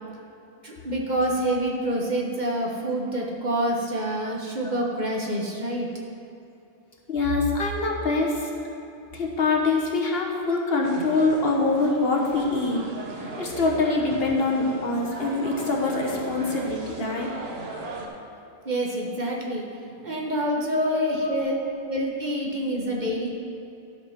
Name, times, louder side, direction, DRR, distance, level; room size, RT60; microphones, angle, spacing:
voice 1, 0.6-5.9 18.6-21.6 21.9-23.3, right 1 dB, 40° right, -2 dB, 1.3 m, -27 dB
voice 2, 7.1-8.5 9.1-12.8 13.2-17.3 21.2-21.3, left 3 dB, 60° left, -1 dB, 1.4 m, -24 dB
sound 1, 10.8-18.1, right 3 dB, 65° right, 1.3 m, -38 dB
12.0 x 5.4 x 5.9 m, 2.9 s
omnidirectional pair, 1.2 m